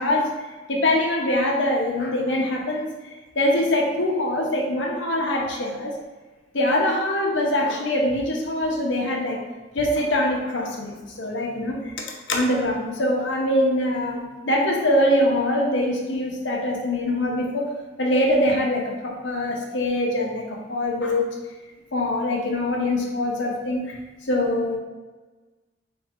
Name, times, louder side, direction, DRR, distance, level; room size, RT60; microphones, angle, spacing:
voice 1, 0.0-5.9 6.5-9.4 9.7-11.9 12.3-17.7 18.0-21.3 21.9-24.0 24.2-24.8, left 1 dB, 80° left, -1 dB, 0.8 m, -23 dB
3.3 x 3.2 x 4.3 m, 1.3 s
head